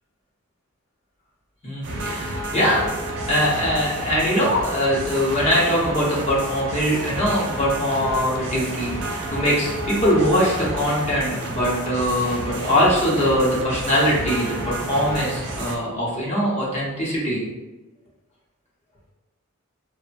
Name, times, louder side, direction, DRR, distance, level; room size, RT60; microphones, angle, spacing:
voice 1, 1.6-8.9 9.3-17.4, equal, 30° left, -6 dB, 0.7 m, -22 dB
sound 1, 1.8-15.8, right 2 dB, 55° right, 0.4 m, -30 dB
3.0 x 2.1 x 2.5 m, 1.1 s
head